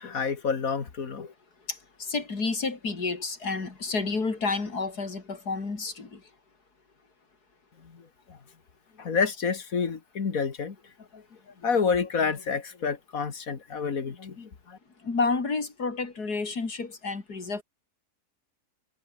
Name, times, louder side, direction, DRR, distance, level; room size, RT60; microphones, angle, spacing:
voice 1, 0.0-1.3 7.8-8.4 9.0-10.8 11.1-11.2 11.6-14.8, left 5 dB, 60° left, 2.3 m, -29 dB
voice 2, 2.1-6.2 15.0-17.6, left 4 dB, 75° left, 4.0 m, -30 dB
omnidirectional pair, 1.7 m